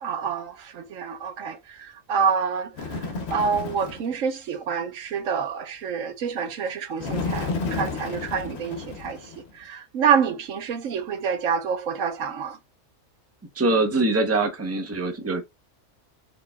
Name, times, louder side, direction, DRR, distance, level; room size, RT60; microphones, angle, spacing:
voice 1, 0.0-3.0 3.3-12.6, right 6 dB, 75° right, 1.2 m, -27 dB
Bird, 2.7-4.1 7.0-9.5, left 4 dB, 55° left, 1.1 m, -31 dB
voice 2, 13.6-15.4, right 2 dB, 15° right, 0.7 m, -23 dB
4.6 x 3.8 x 2.3 m
omnidirectional pair, 1.3 m